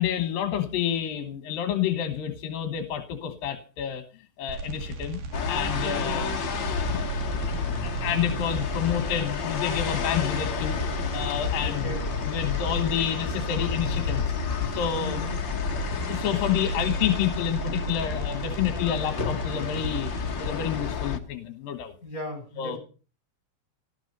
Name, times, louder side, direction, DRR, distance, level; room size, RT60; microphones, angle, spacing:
voice 1, 0.0-4.0 4.4-5.2 5.5-6.4 6.8-10.8 11.1-11.9 12.2-14.2 14.7-15.2 15.5-20.1 20.4-21.9 22.6-22.8, left 9 dB, 70° left, 10 dB, 2.8 m, -29 dB
sound 1, 4.5-20.5, right 4 dB, 85° right, 4.4 m, -35 dB
sound 2, 5.3-21.2, left 6 dB, 50° left, 1.5 m, -31 dB
voice 2, 5.8-6.2 11.6-12.0 15.0-15.4 22.0-22.8, left 2 dB, 20° left, 6 dB, 6.4 m, -37 dB
19.0 x 14.0 x 5.4 m, 0.38 s
omnidirectional pair, 4.3 m